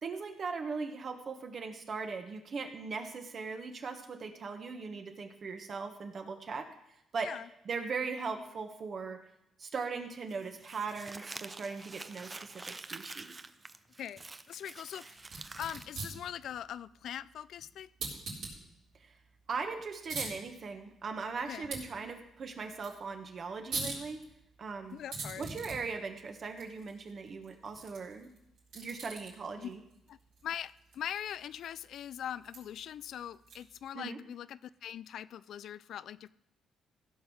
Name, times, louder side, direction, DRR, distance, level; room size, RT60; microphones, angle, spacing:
voice 1, 0.0-6.7 7.1-7.3 7.6-9.2 9.6-13.4 19.0-19.1 19.5-24.2 24.6-25.0 25.4-28.3 28.7-29.8 33.9-34.2, right 4 dB, 50° right, 5 dB, 1.5 m, -39 dB
Crumpling crinkling, 10.3-15.8, right 3 dB, 25° right, 0.6 m, -47 dB
voice 2, 14.0-15.2 15.6-17.9 21.4-21.7 24.9-25.5 29.6-29.7 30.1-36.3, left 10 dB, 70° left, 17 dB, 0.3 m, -42 dB
sound 1, 15.2-33.9, right 3 dB, 80° right, 3.7 m, -46 dB
15.5 x 5.5 x 6.3 m, 0.79 s
cardioid pair, 90°, 0 cm